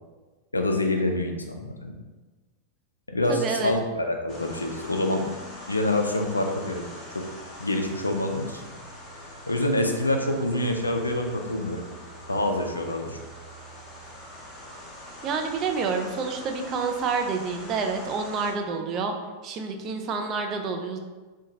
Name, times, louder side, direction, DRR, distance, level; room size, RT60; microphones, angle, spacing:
voice 1, 0.5-2.0 3.1-5.2 5.7-6.9 7.1-7.2 7.6-8.6 9.5-11.8 12.3-13.2, left 1 dB, 80° left, 3 dB, 0.3 m, -26 dB
voice 2, 3.3-3.7 15.2-19.1 19.4-21.0, right 5 dB, 35° right, 4 dB, 0.3 m, -28 dB
sound 1, 4.3-18.5, left 1 dB, 20° left, 0.7 m, -43 dB
2.7 x 2.2 x 2.6 m, 1.3 s
figure-of-eight pair, 90°, 0 cm